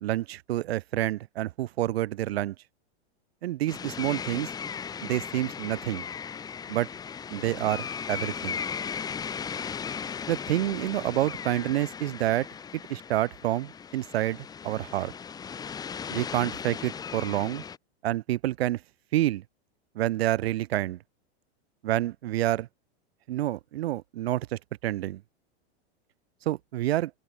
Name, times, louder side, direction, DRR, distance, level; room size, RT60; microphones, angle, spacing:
voice 1, 0.0-2.6 3.4-4.5 5.0-6.1 6.7-6.9 7.3-8.6 10.3-12.5 12.9-15.1 16.1-17.6 18.0-18.8 19.1-19.4 20.0-21.0 21.8-22.7 23.3-25.2 26.5-27.1, right 14 dB, 65° right, 1.8 m, -28 dB
sound 1, 3.7-17.8, left 7 dB, 10° left, 2.6 m, -37 dB
open air
supercardioid pair, 175°, 33 cm